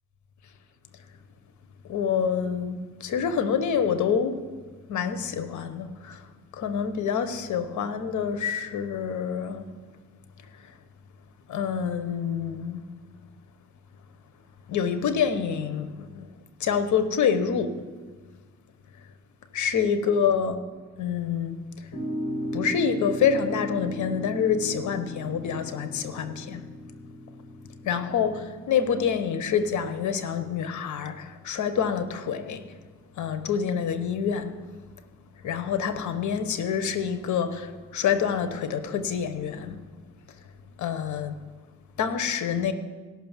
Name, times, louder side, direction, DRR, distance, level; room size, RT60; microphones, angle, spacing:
voice 1, 1.8-4.5 4.9-6.3 6.5-9.7 10.4-10.7 11.5-12.8 14.7-16.3 16.6-17.8 19.5-20.6 21.0-21.9 22.5-26.6 27.8-32.7 33.2-34.6 35.4-39.8 40.8-41.4 42.0-42.7, left 7 dB, 70° left, 1.2 m, -27 dB
sound 1, 21.9-28.3, equal, 50° left, 2.5 m, -36 dB
16.5 x 6.2 x 7.3 m
cardioid pair, 90°, 30 cm